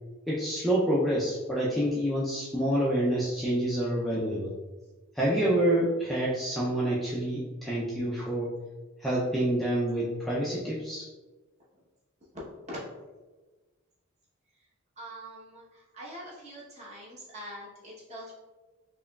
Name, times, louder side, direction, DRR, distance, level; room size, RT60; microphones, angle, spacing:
voice 1, 0.3-4.5 5.1-8.5 9.0-11.1, right 1 dB, ahead, -8 dB, 0.4 m, -27 dB
voice 2, 12.3-12.8 15.0-18.3, equal, 30° right, -6 dB, 0.9 m, -43 dB
4.5 x 2.9 x 2.3 m, 1.2 s
head